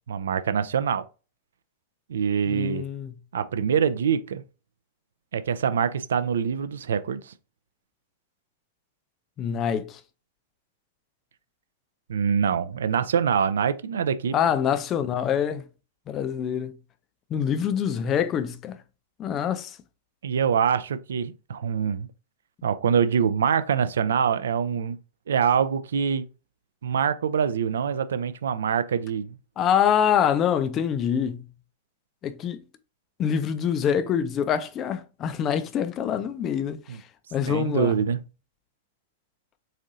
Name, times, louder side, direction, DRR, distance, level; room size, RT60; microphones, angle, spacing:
voice 1, 0.1-1.1 2.1-2.8 3.3-4.4 5.3-7.3 12.1-14.4 20.2-22.1 22.6-25.0 25.3-26.3 26.8-29.3 36.9-37.0 37.5-38.2, right 7 dB, 65° right, 0.3 m, -24 dB
voice 2, 2.5-3.1 9.4-10.0 14.3-15.7 16.1-16.7 17.3-18.8 19.2-19.8 29.6-31.4 32.2-32.6 33.2-36.8 37.3-38.0, left 8 dB, 30° left, 0.4 m, -25 dB
4.1 x 2.6 x 2.6 m
figure-of-eight pair, 100°, 0 cm